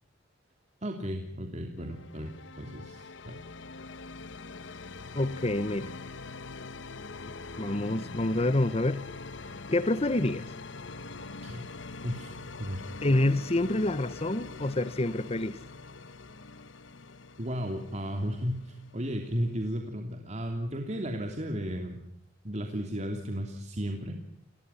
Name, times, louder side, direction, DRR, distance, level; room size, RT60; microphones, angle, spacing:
voice 1, 0.8-3.4 11.4-11.6 12.0-12.3 12.6-12.8 17.4-22.0 22.4-24.2, equal, 35° right, 3.0 m, -34 dB
sound 1, 1.8-19.5, left 3 dB, 80° left, 1.2 m, -43 dB
voice 2, 5.1-5.9 7.6-9.0 9.7-10.5 13.0-15.6, left 1 dB, 35° left, 1.1 m, -27 dB
30.0 x 22.0 x 5.8 m
head